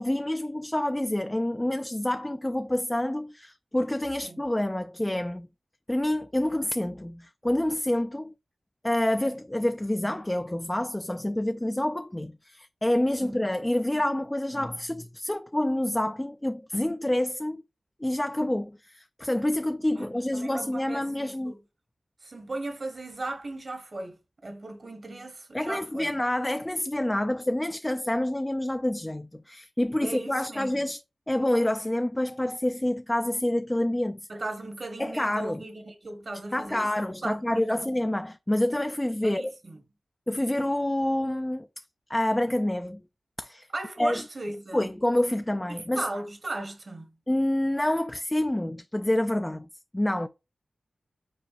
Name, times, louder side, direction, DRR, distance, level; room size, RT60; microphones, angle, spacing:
voice 1, 0.0-5.5 5.9-8.3 8.8-17.6 18.0-21.5 25.5-31.0 31.3-34.3 35.0-35.6 36.5-39.5 40.3-41.7 42.1-43.0 43.4-43.7 44.0-44.2 44.7-46.0 47.3-49.7 49.9-50.3, left 1 dB, 15° left, 0.3 m, -27 dB
voice 2, 20.0-21.6 22.2-26.1 30.0-30.8 34.3-37.8 39.2-39.8 43.7-45.0 45.7-47.1, right 2 dB, 50° right, 1.3 m, -37 dB
5.4 x 3.9 x 2.5 m
wide cardioid pair, 60°, 0 cm